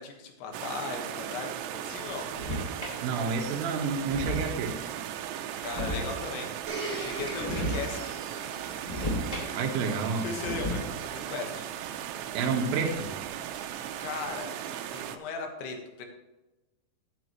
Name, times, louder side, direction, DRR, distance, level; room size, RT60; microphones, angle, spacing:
voice 1, 0.0-2.3 5.6-6.5 6.9-8.2 10.2-11.6 13.5-13.7 14.0-14.5 14.9-16.1, left 4 dB, 80° left, 3 dB, 3.7 m, -37 dB
sound 1, 0.5-15.2, right 10 dB, 85° right, 2.9 m, -37 dB
sound 2, 2.1-3.0 3.5-3.6 3.9-4.8 5.5-6.5 7.1-8.0 8.4-9.8 10.1-11.1, equal, 20° left, 1.0 m, -35 dB
voice 2, 3.0-4.8 9.6-10.3 12.3-13.1, right 5 dB, 65° right, 3 dB, 2.5 m, -29 dB
Domestic sounds home sounds, 6.7-11.5 12.3-12.4, right 2 dB, 40° right, 1.2 m, -42 dB
11.5 x 9.0 x 3.1 m, 1.1 s
omnidirectional pair, 5.3 m